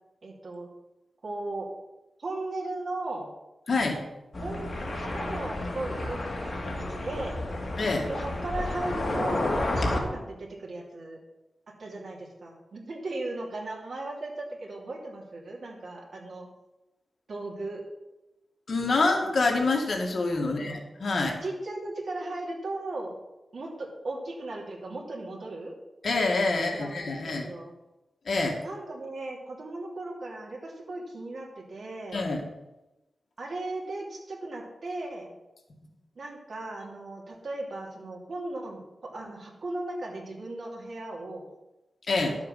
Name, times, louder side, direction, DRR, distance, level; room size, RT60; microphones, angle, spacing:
voice 1, 0.2-0.7 1.2-1.7 2.2-3.3 4.4-4.7 5.0-7.4 8.1-11.2 11.8-16.5 17.3-17.8 20.4-20.8 21.3-23.2 23.5-25.8 26.5-27.7 28.6-32.3 33.4-35.3 36.1-41.5 42.2-42.3, right 2 dB, 60° right, -2 dB, 3.0 m, -37 dB
voice 2, 3.7-4.0 7.8-8.1 18.7-21.4 26.0-27.5 28.3-28.6 32.1-32.4 42.1-42.4, left 3 dB, 55° left, 1 dB, 2.1 m, -26 dB
sound 1, 4.3-10.0, left 1 dB, 35° left, 2.3 m, -31 dB
11.5 x 7.4 x 5.8 m, 0.98 s
wide cardioid pair, 135°, 0 cm